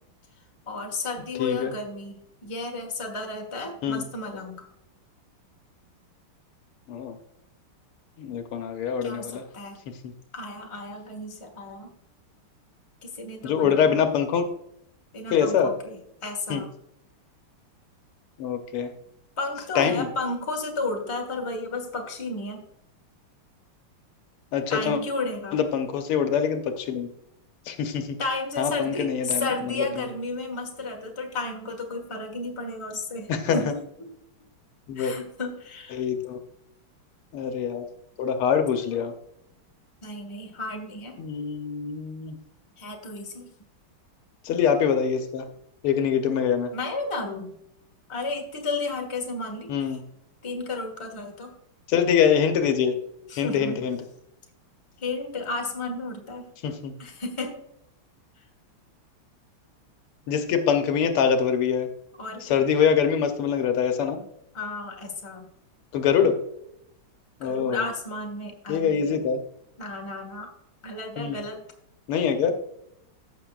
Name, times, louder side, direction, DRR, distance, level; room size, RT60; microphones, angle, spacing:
voice 1, 0.7-4.7 9.0-9.8 10.3-11.9 13.0-14.0 15.1-16.7 19.4-22.6 24.7-25.6 28.2-34.1 34.9-36.0 38.9-39.1 40.0-41.2 42.8-43.5 46.7-47.5 48.1-50.0 50.4-51.5 53.3-53.9 55.0-56.5 57.0-57.6 62.2-62.6 64.5-65.5 67.4-69.2 69.8-70.5 70.8-71.6, left 3 dB, 15° left, 2 dB, 1.3 m, -33 dB
voice 2, 1.4-1.7 3.8-4.0 6.9-7.2 8.2-9.5 10.0-10.1 13.4-14.5 15.3-15.7 16.5-16.6 18.4-18.9 19.7-20.1 24.5-25.0 25.5-27.1 27.7-28.2 28.6-30.0 33.3-33.6 34.9-35.1 35.9-36.4 37.3-37.8 38.2-39.1 41.2-42.4 44.4-45.4 45.8-46.7 49.7-50.0 51.9-52.9 53.4-54.0 56.6-56.9 60.3-61.9 62.4-64.2 65.9-66.4 67.4-67.8 68.7-69.4 71.2-71.4 72.1-72.5, left 7 dB, 80° left, 6 dB, 1.9 m, -24 dB
14.5 x 6.6 x 2.4 m, 0.77 s
omnidirectional pair, 2.4 m